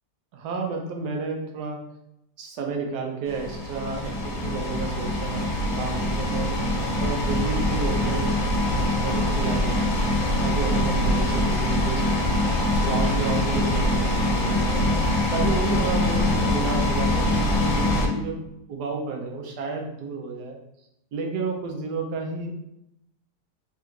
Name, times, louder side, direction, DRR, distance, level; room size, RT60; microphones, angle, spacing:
voice 1, 0.3-1.8 2.4-6.6 7.0-8.3 8.7-10.0 10.4-12.0 12.8-14.8 15.3-18.4 18.7-20.6 21.1-22.5, right 4 dB, 90° right, 2 dB, 1.3 m, -31 dB
sound 1, 3.3-18.1, left 1 dB, 60° left, 1.2 m, -23 dB
3.4 x 2.5 x 4.4 m, 0.83 s
omnidirectional pair, 1.7 m